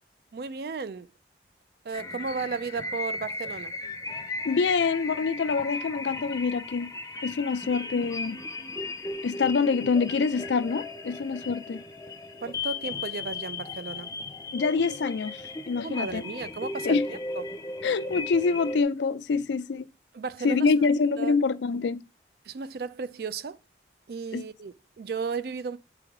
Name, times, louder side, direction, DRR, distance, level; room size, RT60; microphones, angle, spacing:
voice 1, 0.3-1.1 1.8-3.7 12.4-14.1 15.8-17.4 20.1-20.7 21.2-21.4 22.5-23.6 24.1-25.8, right 4 dB, 55° right, 0.4 m, -34 dB
sound 1, 1.9-18.8, left 3 dB, 20° left, 0.6 m, -36 dB
voice 2, 4.4-6.9 7.2-8.4 9.2-11.8 14.5-16.2 16.8-17.1 17.8-19.9 20.4-22.0 24.3-24.4, left 4 dB, 80° left, 0.4 m, -26 dB
8.5 x 3.3 x 3.6 m
head